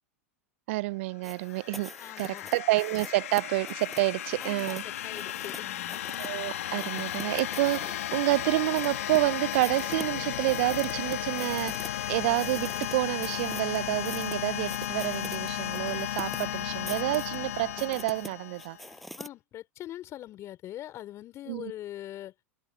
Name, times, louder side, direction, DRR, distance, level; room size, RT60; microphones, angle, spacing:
voice 1, 0.7-4.8 6.2-18.8 21.5-21.7, right 20 dB, 60° right, 0.5 m, -29 dB
sound 1, 1.2-5.6 5.9-6.4 6.8-9.2 9.5-11.9 12.1-19.3, equal, ahead, 6.2 m, -45 dB
sound 2, 1.3-18.9, left 12 dB, 70° left, 1.6 m, -34 dB
voice 2, 2.0-2.5 4.4-6.0 19.2-22.3, left 13 dB, 40° left, 4.3 m, -42 dB
sound 3, 4.2-7.8 8.1-11.9, left 5 dB, 90° left, 2.1 m, -57 dB
hypercardioid pair, 95°, 8 cm